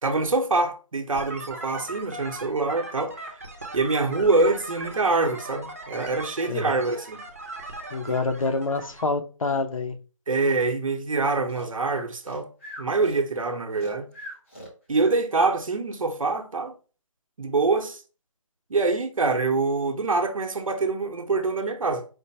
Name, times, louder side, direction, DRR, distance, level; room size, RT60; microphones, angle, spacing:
voice 1, 0.0-3.3 3.7-7.2 8.1-8.2 10.3-12.5 12.8-14.1 14.9-16.7 17.4-18.0 18.7-22.1, right 3 dB, 85° right, 0.8 m, -25 dB
sound 1, 1.1-9.0, right 2 dB, 25° right, 0.6 m, -39 dB
voice 2, 6.5-6.8 7.9-10.0, left 3 dB, 85° left, 0.8 m, -27 dB
Breathing, 11.5-15.2, equal, 25° left, 0.9 m, -42 dB
5.0 x 2.0 x 4.2 m
figure-of-eight pair, 175°, 17 cm